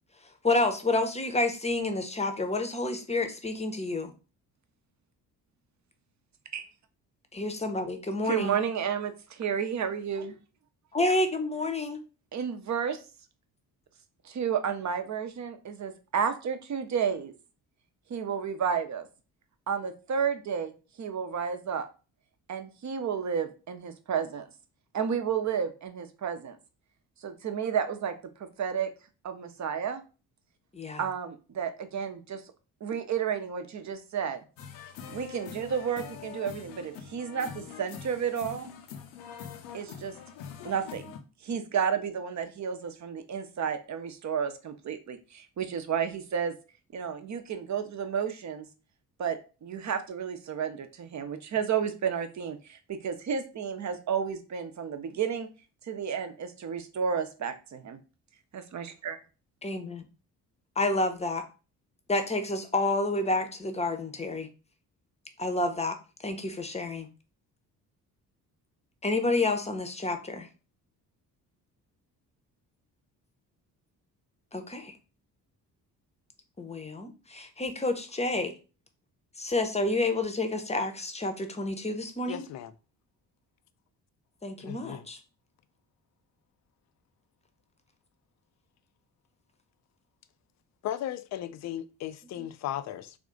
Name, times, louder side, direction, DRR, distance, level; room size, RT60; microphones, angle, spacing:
voice 1, 0.4-4.1 7.3-8.6 10.9-12.0 30.7-31.0 59.6-60.1 60.8-61.4 62.1-64.5 65.4-66.0 66.2-67.1 69.0-70.5 74.5-74.9 76.6-78.5 79.4-82.4 84.4-85.2, left 2 dB, 15° left, 0.8 m, -29 dB
voice 2, 8.2-10.4 12.3-13.0 14.2-17.3 18.1-19.1 19.7-20.7 21.0-21.9 22.5-24.4 24.9-26.6 27.2-28.1 28.4-28.9 29.2-30.0 31.0-32.4 32.8-34.4 35.1-38.7 39.7-40.1 40.6-46.5 46.9-48.7 49.2-55.5 55.9-58.0 58.5-59.2, right 7 dB, 35° right, 0.7 m, -31 dB
sound 1, 34.6-41.2, left 8 dB, 70° left, 0.7 m, -44 dB
voice 3, 82.3-82.7 84.6-85.1 90.8-93.2, left 11 dB, 35° left, 0.4 m, -36 dB
3.5 x 2.4 x 3.8 m
hypercardioid pair, 45°, 48 cm